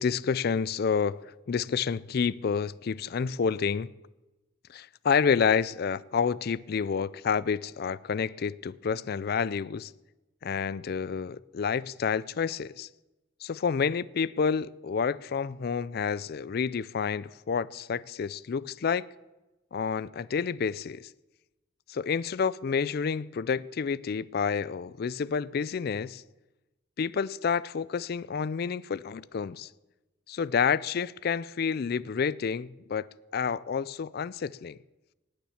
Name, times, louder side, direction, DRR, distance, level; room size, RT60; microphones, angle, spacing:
voice 1, 0.0-3.9 4.7-9.9 10.4-12.9 13.4-19.0 19.7-21.1 21.9-26.2 27.0-29.7 30.3-33.1 33.3-34.8, left 6 dB, 55° left, 0.4 m, -29 dB
18.5 x 7.2 x 7.2 m
head